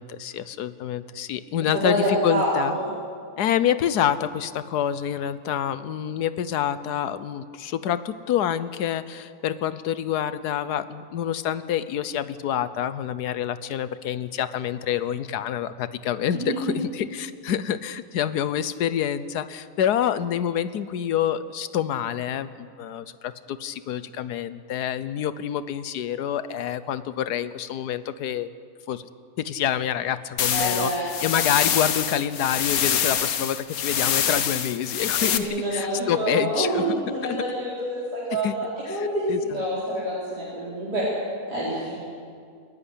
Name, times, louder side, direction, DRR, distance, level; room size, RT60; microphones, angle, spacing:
voice 1, 0.0-2.8 3.4-28.5 28.9-29.1 29.4-37.0 37.2-37.4 38.4-38.5 38.9-39.7, left 10 dB, 85° left, 13 dB, 1.4 m, -27 dB
voice 2, 2.3-2.9 16.3-16.8 30.5-31.1 35.2-41.1 41.5-42.0, right 1 dB, 80° right, -9 dB, 5.4 m, -27 dB
sound 1, 30.4-35.4, left 8 dB, 65° left, 1.4 m, -25 dB
28.5 x 11.0 x 10.0 m, 2.2 s
omnidirectional pair, 1.7 m